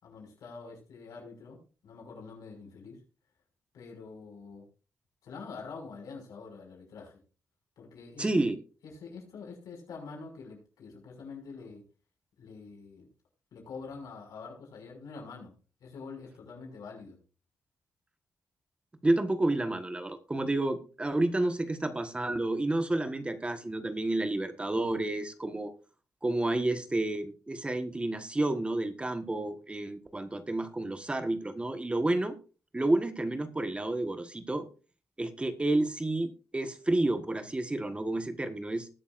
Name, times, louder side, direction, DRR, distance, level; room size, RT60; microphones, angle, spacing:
voice 1, 0.0-3.0 3.7-4.6 5.2-7.2 7.8-8.5 8.8-11.8 12.4-13.1 13.5-15.5 15.8-17.2, left 4 dB, 90° left, 0 dB, 5.9 m, -46 dB
voice 2, 8.2-8.5 19.0-25.7 26.2-32.3 32.7-34.7 35.2-38.9, right 2 dB, 20° right, 8 dB, 1.4 m, -30 dB
20.0 x 7.1 x 2.6 m, 0.35 s
cardioid pair, 100°, 6 cm